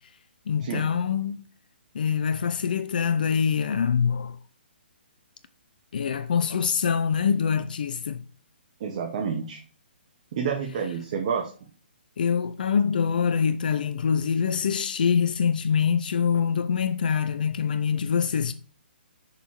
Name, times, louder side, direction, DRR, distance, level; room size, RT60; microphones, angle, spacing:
voice 1, 0.5-1.4 1.9-4.4 5.9-8.2 12.2-18.5, left 7 dB, 50° left, 0.4 m, -24 dB
voice 2, 8.8-9.6 10.3-11.5, right 6 dB, 40° right, 0.9 m, -29 dB
6.6 x 5.5 x 3.0 m
figure-of-eight pair, 130°, 6 cm